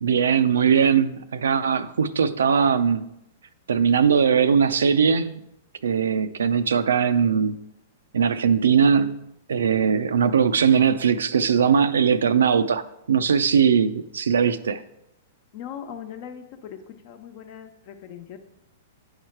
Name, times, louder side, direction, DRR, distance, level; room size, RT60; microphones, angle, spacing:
voice 1, 0.0-3.1 3.7-5.3 5.8-7.6 8.1-9.2 9.5-14.8, right 7 dB, 85° right, 0.5 m, -20 dB
voice 2, 15.5-18.4, left 8 dB, 50° left, 1.0 m, -39 dB
8.7 x 4.8 x 4.5 m
hypercardioid pair, 130°, 0 cm